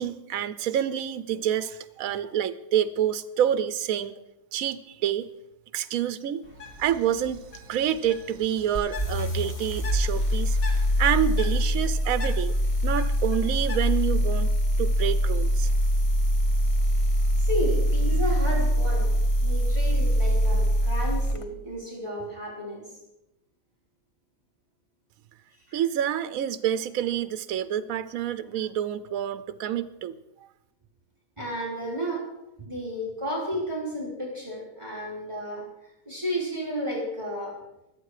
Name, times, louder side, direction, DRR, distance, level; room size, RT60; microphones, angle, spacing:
voice 1, 0.0-4.2 4.5-5.3 5.7-6.4 6.8-12.5 12.8-14.5 14.8-15.7 25.7-30.2, right 10 dB, 75° right, 13 dB, 1.1 m, -28 dB
Bird, 6.4-14.2, left 3 dB, 70° left, 2.6 m, -44 dB
sound 1, 8.7-21.4, equal, 25° left, 0.9 m, -23 dB
voice 2, 17.4-19.1 19.4-22.8 25.7-25.8 31.4-32.3 32.6-35.6 36.1-37.6, equal, 20° right, -4 dB, 3.6 m, -32 dB
23.5 x 8.4 x 4.9 m, 0.89 s
omnidirectional pair, 1.5 m